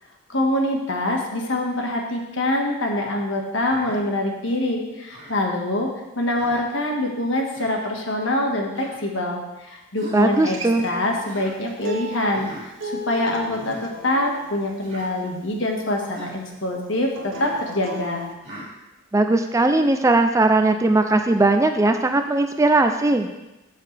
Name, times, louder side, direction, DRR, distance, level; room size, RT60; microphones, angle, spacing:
voice 1, 0.3-18.2, left 1 dB, 65° left, 1 dB, 1.5 m, -25 dB
Human voice, 3.7-4.0 5.1-5.4 6.4-6.7 7.5-7.7 8.7-9.0 9.9-10.3 11.2-11.5 12.3-12.7 13.5-13.8 14.8-15.1 16.0-16.3 17.3-17.6 18.4-18.7, equal, 35° right, 3.5 m, -40 dB
voice 2, 10.1-10.9 19.1-23.3, right 2 dB, 15° right, 6 dB, 0.4 m, -19 dB
Acoustic guitar, 10.3-15.5 17.1-18.3, equal, 65° right, 1.3 m, -36 dB
13.0 x 6.6 x 3.4 m, 0.98 s
head